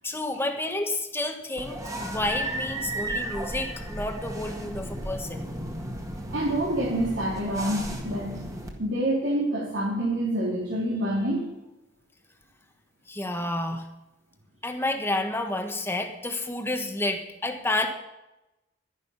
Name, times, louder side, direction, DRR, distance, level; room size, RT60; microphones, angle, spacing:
voice 1, 0.0-5.5 13.1-13.8 14.6-17.9, left 2 dB, 15° left, 5 dB, 1.3 m, -30 dB
sound 1, 1.6-8.7, right 1 dB, 20° right, 1.9 m, -34 dB
voice 2, 6.3-8.3 8.8-11.5, right 1 dB, 75° right, -5 dB, 3.4 m, -27 dB
12.0 x 11.0 x 5.6 m, 0.95 s
head